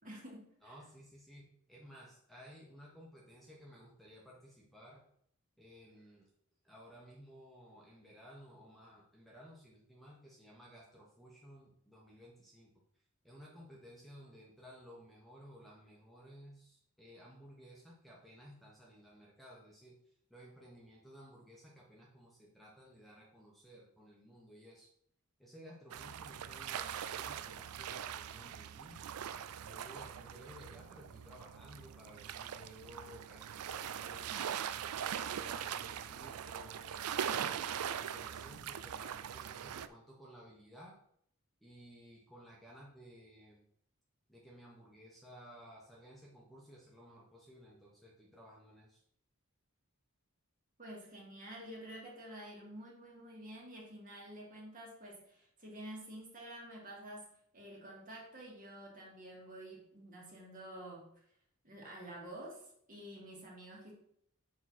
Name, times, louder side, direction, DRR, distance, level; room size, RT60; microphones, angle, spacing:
voice 1, 0.0-0.7 50.8-61.1 61.6-63.9, right 1 dB, 40° right, -3 dB, 2.3 m, -49 dB
voice 2, 0.6-5.0 5.6-6.3 6.6-12.7 13.2-24.9 25.4-29.0 29.6-34.5 35.0-41.0 41.6-43.6 44.3-49.0, equal, ahead, -4 dB, 1.2 m, -56 dB
sound 1, 25.9-39.9, right 9 dB, 90° right, 0.4 m, -41 dB
7.1 x 4.8 x 4.3 m, 0.68 s
head